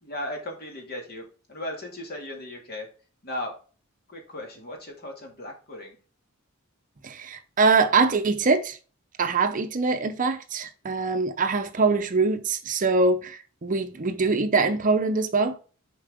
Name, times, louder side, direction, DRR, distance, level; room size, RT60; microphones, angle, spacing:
voice 1, 0.0-2.9 3.2-3.5 4.1-6.0 10.8-11.1, left 1 dB, 50° left, 2.1 m, -37 dB
voice 2, 7.0-8.8 9.2-15.6, right 4 dB, 40° right, 0.6 m, -23 dB
7.1 x 4.6 x 3.5 m
head